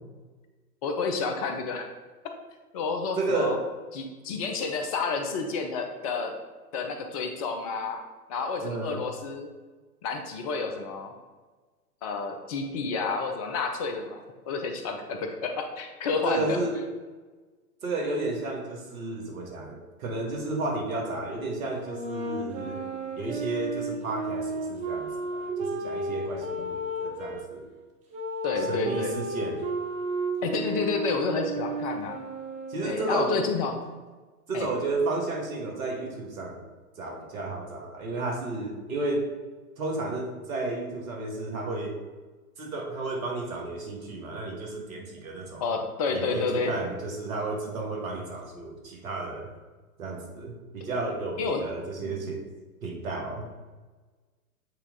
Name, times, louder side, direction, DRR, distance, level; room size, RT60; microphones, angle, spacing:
voice 1, 0.8-1.9 2.7-3.6 3.9-6.3 6.7-8.0 8.3-9.5 10.0-11.1 12.0-16.6 28.4-29.1 30.4-32.2 32.8-33.8 34.5-34.7 45.6-46.7 51.4-51.6 52.0-52.1, left 4 dB, 25° left, 4 dB, 0.5 m, -30 dB
voice 2, 3.2-3.6 8.6-9.0 16.2-16.8 17.8-22.8 23.2-27.6 28.7-29.6 32.7-33.3 34.5-36.6 37.0-39.3 39.8-41.9 42.6-45.7 46.1-49.5 50.0-52.4 52.8-53.5, right 2 dB, 60° right, 0 dB, 1.9 m, -32 dB
sound 1, 21.8-27.4 28.1-33.6, right 2 dB, 15° right, 0.8 m, -33 dB
8.2 x 3.6 x 3.7 m, 1.3 s
figure-of-eight pair, 115°, 46 cm